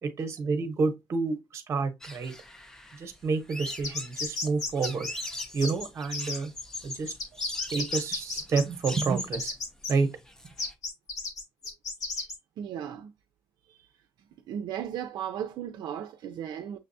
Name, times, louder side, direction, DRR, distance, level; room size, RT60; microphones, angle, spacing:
voice 1, 0.0-2.3 2.9-5.1 5.5-6.5 6.8-7.1 7.7-9.5 9.9-10.1 10.4-10.5, right 4 dB, 35° right, 0.8 m, -29 dB
sound 1, 2.0-10.7, equal, 5° left, 0.5 m, -43 dB
sound 2, 3.7-9.9 10.6-12.4, left 3 dB, 45° left, 1.1 m, -33 dB
voice 2, 12.6-13.1 13.7-13.9 14.5-16.8, right 9 dB, 65° right, 0.4 m, -36 dB
6.5 x 2.3 x 2.6 m
cardioid pair, 165°, 8 cm